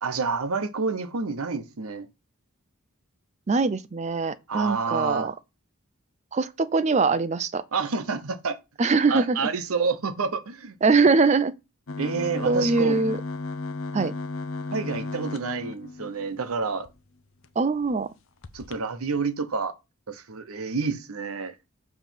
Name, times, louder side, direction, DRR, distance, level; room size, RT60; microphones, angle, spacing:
voice 1, 0.0-2.1 4.5-5.4 7.7-8.6 9.1-10.7 12.0-13.0 14.7-16.9 18.5-19.7 20.1-21.6, right 4 dB, 75° right, 0.8 m, -28 dB
voice 2, 3.5-5.3 6.3-7.6 8.8-9.4 10.8-11.5 12.5-13.2 13.9-14.1 17.6-18.1, right 4 dB, 30° right, 0.4 m, -22 dB
sound 1, 11.9-16.9 17.4-17.5 17.8-18.0 18.4-18.8, left 3 dB, 65° left, 0.6 m, -34 dB
7.1 x 3.1 x 5.8 m
head